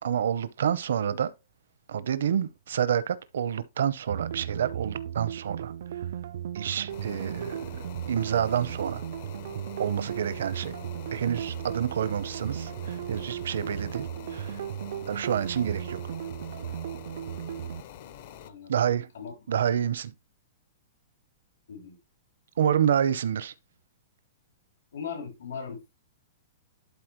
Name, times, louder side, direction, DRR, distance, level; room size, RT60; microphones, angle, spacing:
voice 1, 0.0-1.3 1.9-5.7 6.5-7.8 8.1-9.0 9.8-10.7 11.1-14.6 15.1-16.0 18.7-19.1 19.5-20.1 22.6-23.5, right 9 dB, 75° right, 0.8 m, -28 dB
sound 1, 4.1-17.8, right 10 dB, 55° right, 0.4 m, -36 dB
sound 2, 6.9-18.5, left 10 dB, 40° left, 0.7 m, -46 dB
voice 2, 18.4-18.7 19.1-19.3 21.7-22.0 24.9-26.0, left 6 dB, 75° left, 3.0 m, -39 dB
11.5 x 4.2 x 3.1 m
hypercardioid pair, 175°, 0 cm